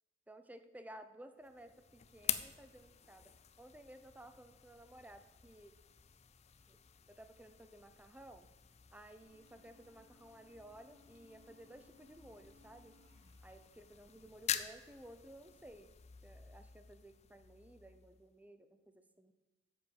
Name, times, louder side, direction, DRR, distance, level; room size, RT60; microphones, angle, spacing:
voice 1, 0.3-5.7 6.7-6.8 7.1-8.5 8.9-12.9 13.4-15.9 16.2-19.3, right 1 dB, 10° right, 9 dB, 0.6 m, -56 dB
sound 1, 1.4-18.4, left 10 dB, 35° left, 0.5 m, -47 dB
sound 2, 9.2-15.6, left 2 dB, 70° right, 1.5 m, -68 dB
8.0 x 7.1 x 7.1 m, 1.2 s
head